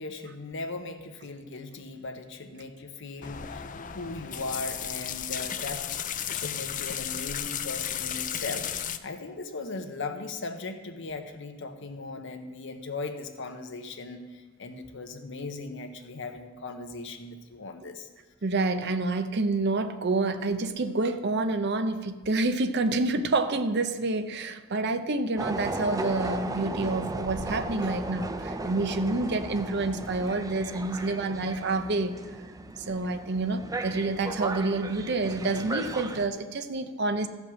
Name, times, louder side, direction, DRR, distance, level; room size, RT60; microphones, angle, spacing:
voice 1, 0.0-5.9 6.3-18.1, left 3 dB, 60° left, 6 dB, 1.0 m, -38 dB
sound 1, 3.2-9.0, left 9 dB, 40° left, 0.5 m, -34 dB
voice 2, 18.4-32.1 32.8-37.3, right 3 dB, 55° right, 9 dB, 0.7 m, -28 dB
sound 2, 25.4-36.3, right 2 dB, 15° right, 0.5 m, -36 dB
15.0 x 5.2 x 6.3 m, 1.4 s
head